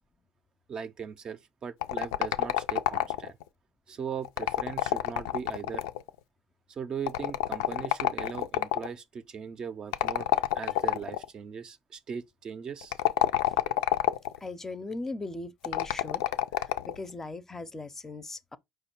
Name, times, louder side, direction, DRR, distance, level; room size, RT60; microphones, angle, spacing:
voice 1, 0.7-3.4 3.9-5.8 6.7-10.3 10.5-13.0, right 6 dB, 40° right, 0.5 m, -39 dB
sound 1, 1.8-3.4 4.2-6.1 7.1-8.9 9.9-11.2 12.8-14.4 15.6-17.0, left 13 dB, 90° left, 0.3 m, -28 dB
voice 2, 14.4-16.2 16.6-18.6, left 2 dB, 20° left, 0.5 m, -39 dB
4.9 x 2.2 x 4.4 m
supercardioid pair, 85°, 2 cm